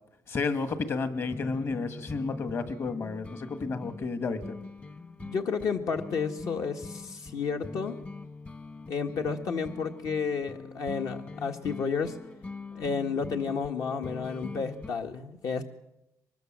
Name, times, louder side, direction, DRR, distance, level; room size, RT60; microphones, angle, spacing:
voice 1, 0.3-4.6, left 4 dB, 40° left, 11 dB, 2.0 m, -31 dB
sound 1, 1.1-14.9, left 3 dB, 25° left, 1.3 m, -42 dB
voice 2, 5.2-8.0 8.9-12.2 12.7-15.6, left 5 dB, 65° left, 5 dB, 1.7 m, -31 dB
24.0 x 21.5 x 7.6 m, 0.88 s
cardioid pair, 130°, 6 cm